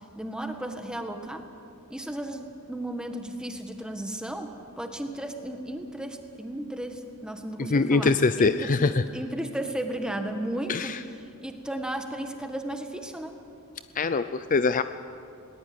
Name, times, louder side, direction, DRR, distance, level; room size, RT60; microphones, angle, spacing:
voice 1, 0.0-1.4 1.9-4.5 4.8-8.1 8.4-8.7 9.1-10.9 11.4-13.3, right 1 dB, 5° right, 5 dB, 1.7 m, -34 dB
voice 2, 7.6-9.0 10.7-11.0 13.9-14.8, left 4 dB, 35° left, 11 dB, 0.5 m, -23 dB
20.5 x 18.5 x 9.7 m, 2.4 s
head